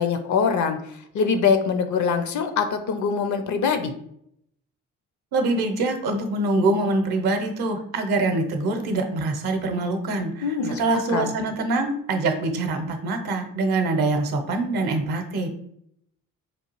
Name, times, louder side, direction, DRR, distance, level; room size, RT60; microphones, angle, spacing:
voice 1, 0.0-3.9 10.4-10.8 11.1-11.3, left 6 dB, 40° left, 8 dB, 0.5 m, -23 dB
voice 2, 5.3-15.5, right 2 dB, 55° right, 6 dB, 0.8 m, -24 dB
4.7 x 2.3 x 3.0 m, 0.72 s
figure-of-eight pair, 45°, 45 cm